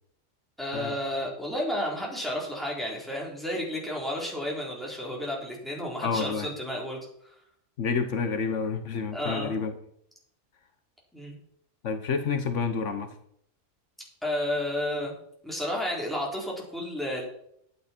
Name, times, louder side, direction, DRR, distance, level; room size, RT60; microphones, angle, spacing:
voice 1, 0.6-7.3 9.1-9.6 11.1-11.4 14.2-15.1 15.4-17.2, left 1 dB, ahead, -3 dB, 3.7 m, -32 dB
voice 2, 6.0-6.5 7.8-9.8 11.8-13.1, left 5 dB, 80° left, 8 dB, 1.4 m, -29 dB
11.0 x 9.3 x 4.4 m, 0.70 s
omnidirectional pair, 1.2 m